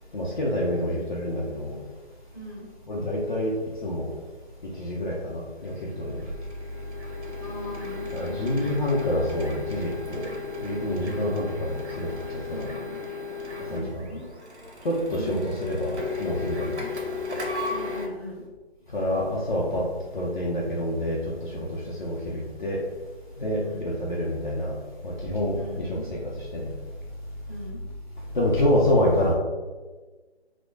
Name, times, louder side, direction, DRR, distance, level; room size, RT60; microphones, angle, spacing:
voice 1, 0.1-1.8 2.9-3.5 3.8-4.1 4.8-6.3 8.1-10.3 10.6-12.7 13.7-14.0 14.8-16.8 18.9-19.9 20.1-22.8 23.4-24.8 25.0-26.2 26.5-26.7 28.3-29.3, left 1 dB, 45° left, -4 dB, 0.5 m, -27 dB
voice 2, 2.3-2.6 7.4-8.7 11.0-11.4 12.4-13.0 13.7-14.2 15.2-15.5 17.7-18.4 23.5-23.9 25.5-26.0 27.5-27.8, equal, 10° left, -10 dB, 1.2 m, -39 dB
Printer, 5.6-18.1, left 4 dB, 80° right, 0.8 m, -35 dB
4.4 x 2.1 x 2.4 m, 1.3 s
figure-of-eight pair, 160°, 34 cm